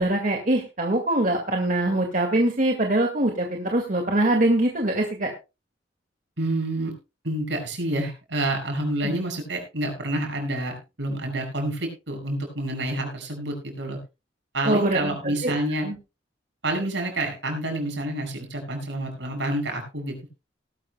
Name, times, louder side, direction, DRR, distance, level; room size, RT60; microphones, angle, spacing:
voice 1, 0.0-5.3 9.0-9.2 14.6-15.6 15.8-16.0, right 1 dB, 45° right, 2 dB, 1.9 m, -23 dB
voice 2, 6.4-6.9 7.2-14.0 14.5-15.9 16.6-20.3, right 1 dB, 75° right, 3 dB, 5.8 m, -28 dB
19.0 x 12.5 x 2.2 m, 0.28 s
head